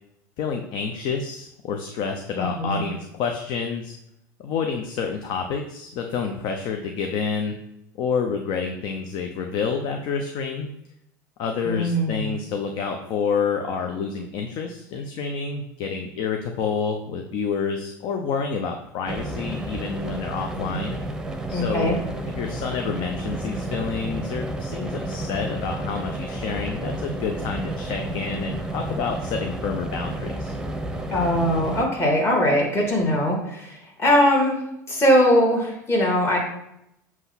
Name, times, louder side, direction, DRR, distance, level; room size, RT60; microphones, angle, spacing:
voice 1, 0.4-3.9 4.4-7.5 8.0-10.7 11.4-21.0 21.5-21.9 22.4-30.5, left 5 dB, 55° left, 4 dB, 0.8 m, -28 dB
voice 2, 2.4-2.8 11.6-12.4 20.5-20.8 21.5-22.0 31.1-34.6 34.9-36.4, equal, 25° left, -2 dB, 2.9 m, -21 dB
sound 1, 19.1-31.9, right 1 dB, 5° right, 1.0 m, -31 dB
7.8 x 3.1 x 5.8 m, 0.81 s
hypercardioid pair, 85°, 10 cm